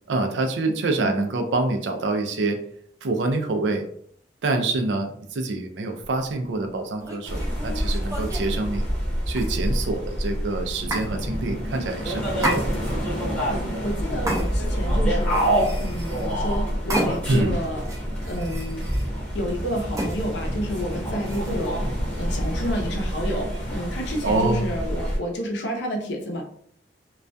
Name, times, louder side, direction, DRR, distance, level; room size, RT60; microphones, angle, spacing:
voice 1, 0.1-2.6 3.0-3.8 4.4-8.9 9.3-12.7 17.3-17.6 24.2-24.7, right 2 dB, 80° right, 5 dB, 0.4 m, -26 dB
sound 1, 6.0-6.2 6.9-8.5 9.3-9.9 10.9-11.1 12.4-13.1 14.3-14.8 15.2-16.3 16.9-17.4 17.8-19.1 19.9-20.2 21.2-21.7, right 1 dB, 20° right, 0.5 m, -31 dB
sound 2, 7.2-25.2, equal, 10° left, 0.8 m, -27 dB
voice 2, 13.5-17.8 18.2-18.9 19.3-21.9 22.2-26.4, equal, 75° left, 1 dB, 0.6 m, -30 dB
2.3 x 2.2 x 2.5 m, 0.63 s
head